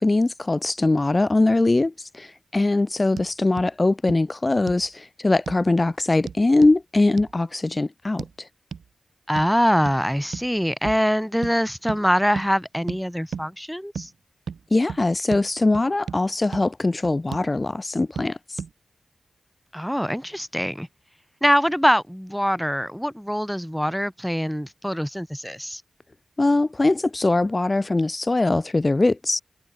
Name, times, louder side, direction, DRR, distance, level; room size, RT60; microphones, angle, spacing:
voice 1, 0.0-8.5 14.7-18.6 26.4-29.4, left 2 dB, 35° left, 1.5 m, -21 dB
sound 1, 3.2-3.3 3.6-3.7 4.1-4.2 4.7-4.9 5.5-5.6 6.3-6.8 7.2-7.3 8.2-8.3 8.7-8.9 9.4-9.5 9.9-10.0 10.3-10.5 10.8-11.0 11.4-11.6 11.9-12.0 12.4-12.5 12.9-13.0 13.3-13.5 13.9-14.1 14.5-14.6 14.9-15.0 15.3-15.4 15.7-16.2 16.5-16.6 17.0-17.5 18.2-18.3 18.6-18.7, right 6 dB, 85° right, 1.5 m, -34 dB
voice 2, 9.3-14.1 19.7-20.9 21.4-25.8, equal, ahead, 4.1 m, -23 dB
cardioid pair, 45°, 0 cm